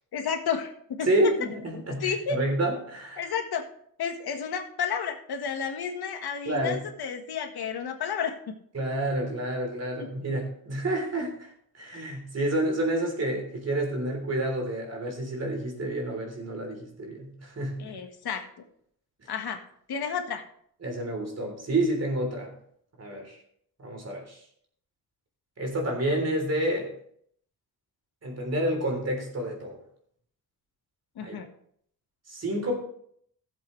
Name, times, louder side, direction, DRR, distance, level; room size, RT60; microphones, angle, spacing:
voice 1, 0.1-0.7 1.0-1.1 2.0-2.4 3.2-3.7 4.0-8.6 10.0-10.1 17.8-18.4 19.3-19.6 19.9-20.4 31.1-31.5, left 6 dB, 85° left, 5 dB, 1.5 m, -31 dB
voice 2, 1.0-3.2 6.5-6.8 8.7-11.5 11.8-18.0 20.8-22.5 23.0-23.4 23.8-24.4 25.6-26.9 28.2-29.8 31.2-31.4 32.3-32.8, right 1 dB, 40° right, 1 dB, 3.5 m, -29 dB
16.0 x 7.6 x 3.2 m, 0.65 s
wide cardioid pair, 135°, 37 cm